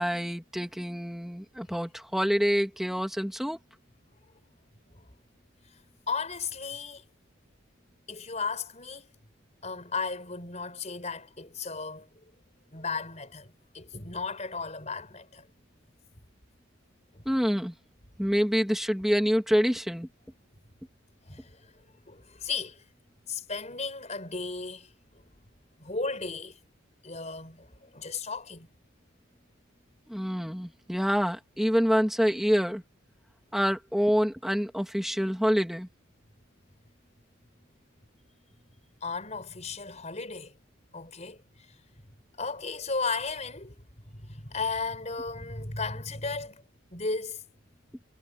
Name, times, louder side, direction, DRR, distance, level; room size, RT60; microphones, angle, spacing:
voice 1, 0.0-3.6 17.2-17.7 18.2-20.1 30.1-32.8 33.5-35.9, equal, ahead, 2.9 m, -26 dB
voice 2, 6.1-7.1 8.1-9.1 9.6-12.1 12.7-15.5 17.1-17.2 21.2-22.8 23.3-25.3 25.8-26.6 27.0-28.7 39.0-40.6 40.9-41.8 42.4-43.7 44.0-46.6 46.9-47.4, left 4 dB, 35° left, 5.0 m, -35 dB
head